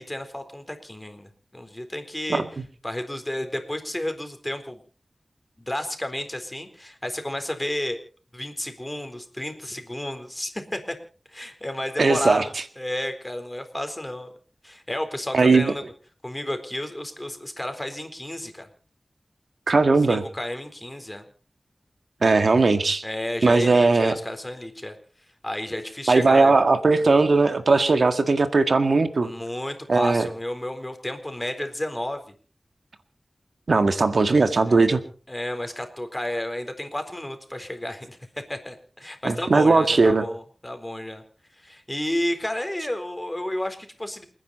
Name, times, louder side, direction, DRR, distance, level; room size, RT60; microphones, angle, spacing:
voice 1, 0.0-2.4 2.8-4.8 5.6-8.0 8.3-10.9 11.3-12.4 12.8-14.3 14.6-15.8 16.2-18.7 20.1-21.2 23.0-25.0 25.4-26.5 26.9-27.1 29.2-32.2 34.0-34.1 34.5-34.9 35.3-38.2 38.5-41.2 41.6-44.2, left 1 dB, 20° left, 7 dB, 4.1 m, -31 dB
voice 2, 12.0-12.4 15.3-15.7 19.7-20.2 22.2-23.0 23.4-24.2 26.1-29.3 29.9-30.3 33.7-35.0 39.2-40.2, right 3 dB, 80° right, 8 dB, 1.8 m, -18 dB
29.0 x 10.0 x 4.2 m, 0.40 s
cardioid pair, 40°, 0 cm